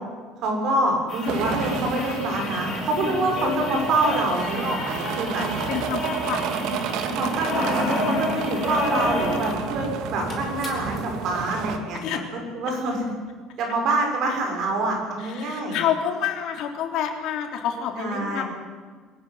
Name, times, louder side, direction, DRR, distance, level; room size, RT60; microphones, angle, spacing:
voice 1, 0.4-5.5 7.0-12.2 12.5-13.1 13.6-15.8 18.0-18.4, right 2 dB, 45° right, 1 dB, 6.8 m, -26 dB
sound 1, 1.1-9.6 9.9-10.0 10.2-11.0 12.0-12.1, left 3 dB, 25° left, 4.6 m, -30 dB
sound 2, 1.3-11.8, right 7 dB, 60° right, 2.1 m, -31 dB
voice 2, 5.7-6.8 12.0-12.2 15.2-18.4, left 9 dB, 55° left, 3 dB, 3.5 m, -28 dB
23.0 x 15.0 x 9.8 m, 1.5 s
cardioid pair, 165°, 0 cm